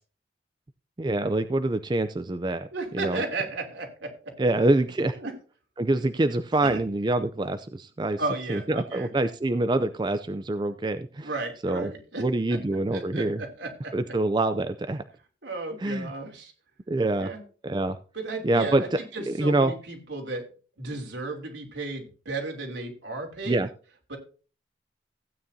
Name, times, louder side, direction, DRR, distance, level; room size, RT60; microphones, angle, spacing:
voice 1, 1.0-2.7 2.9-3.2 4.4-5.2 5.8-8.2 8.5-11.3 11.6-11.9 12.2-13.4 13.9-15.0 15.8-16.1 16.9-17.3 17.6-18.0 18.4-19.0 19.3-19.7 23.5-23.7, right 2 dB, 25° right, 10 dB, 0.4 m, -25 dB
voice 2, 2.7-4.1 5.2-5.3 6.6-6.8 8.2-9.1 11.2-12.6 12.9-13.9 15.4-16.5 17.2-17.4 18.1-20.4 20.8-23.6 24.1-24.2, right 3 dB, 80° right, 1 dB, 3.1 m, -34 dB
15.5 x 9.2 x 2.7 m, 0.38 s
head